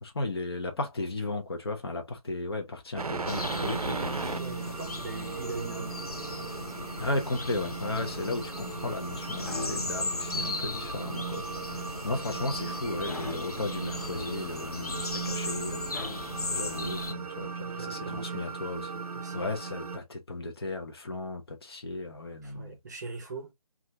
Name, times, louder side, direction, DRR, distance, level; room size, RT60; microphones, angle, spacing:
voice 1, 0.0-4.4 7.0-11.4 11.8-16.1 16.5-18.9 19.3-22.8, left 2 dB, 45° left, 0.7 m, -35 dB
sound 1, 3.0-20.0, right 5 dB, 80° right, 0.5 m, -37 dB
sound 2, 3.3-17.1, left 3 dB, 85° left, 0.6 m, -38 dB
voice 2, 4.2-6.0 6.4-6.6 17.7-18.6 19.1-19.5 22.4-23.5, right 3 dB, 30° right, 0.7 m, -41 dB
sound 3, 9.4-10.3 13.1-13.8 15.9-16.7, left 2 dB, 20° left, 1.0 m, -40 dB
2.7 x 2.5 x 3.2 m
figure-of-eight pair, 155°, 19 cm